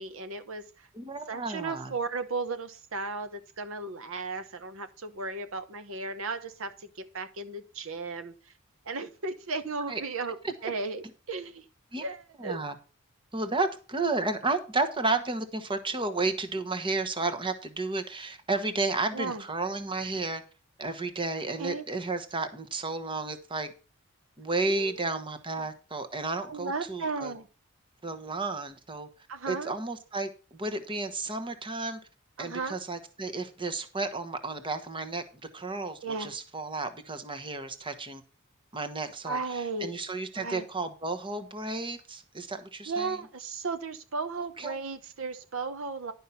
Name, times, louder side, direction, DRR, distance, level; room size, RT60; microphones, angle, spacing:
voice 1, 0.0-0.9 1.3-8.5 8.8-11.7 12.0-12.6 19.1-19.4 21.6-21.8 24.7-24.9 26.5-27.5 29.3-29.7 32.4-32.8 36.0-36.4 39.2-39.9 40.3-40.6 42.9-46.1, right 3 dB, 70° right, 0.9 m, -35 dB
voice 2, 0.9-1.9 9.9-10.0 10.4-10.7 11.9-12.0 12.4-12.7 13.3-20.4 20.8-23.7 24.4-27.3 28.0-29.1 29.5-32.0 32.4-35.2 35.5-38.2 38.7-43.2 44.6-44.8, right 3 dB, 25° right, 1.1 m, -32 dB
11.0 x 5.5 x 5.7 m
head